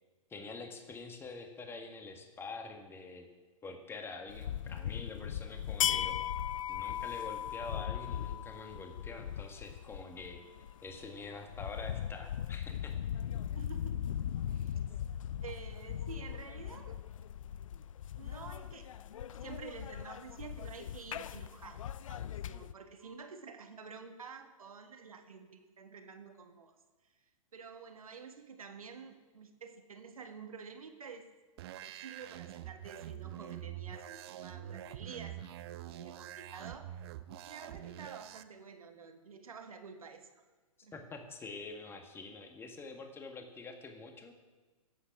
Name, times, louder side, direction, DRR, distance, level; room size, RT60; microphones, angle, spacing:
voice 1, 0.3-3.3 3.6-6.2 6.7-10.4 10.8-12.9 40.9-44.3, left 3 dB, 15° left, 5 dB, 1.6 m, -46 dB
sound 1, 4.3-22.7, left 10 dB, 65° left, 0.5 m, -38 dB
voice 2, 13.5-14.8 15.4-17.0 18.1-18.9 19.4-26.8 27.5-31.3 31.8-36.9 37.4-40.3 40.8-41.0, right 5 dB, 75° right, 7 dB, 1.7 m, -49 dB
sound 2, 31.6-38.4, right 12 dB, 45° right, 0.7 m, -45 dB
17.0 x 8.1 x 6.0 m, 1.3 s
hypercardioid pair, 120°, 18 cm